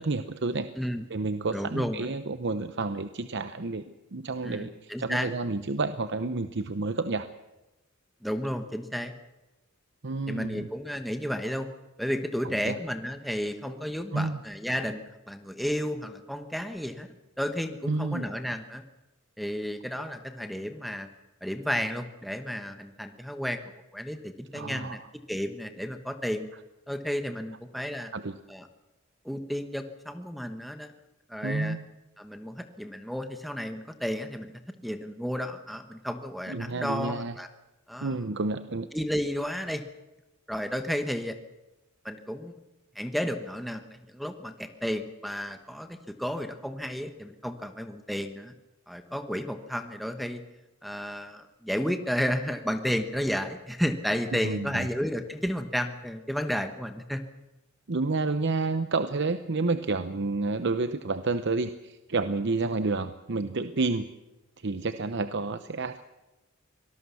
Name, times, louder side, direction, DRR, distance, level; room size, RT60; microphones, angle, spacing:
voice 1, 0.0-0.7 1.1-3.8 4.1-7.3 10.0-10.7 12.6-12.8 14.1-14.4 17.9-18.3 24.5-25.0 28.1-28.4 31.4-31.8 36.5-37.3 38.0-38.9 54.4-54.9 57.9-64.1 64.6-66.0, right 3 dB, 60° right, 11 dB, 0.8 m, -30 dB
voice 2, 1.5-2.1 4.4-5.3 8.2-9.1 10.3-11.7 12.0-17.1 17.4-18.8 19.4-21.1 21.4-25.0 25.3-26.5 26.9-28.1 28.5-28.7 29.2-30.9 31.3-31.8 32.2-34.5 34.8-37.5 37.9-38.1 38.9-39.8 40.5-41.4 42.0-42.6 42.9-48.5 48.9-50.4 50.8-57.2, equal, ahead, 7 dB, 1.1 m, -32 dB
24.5 x 18.5 x 7.0 m, 1.0 s
head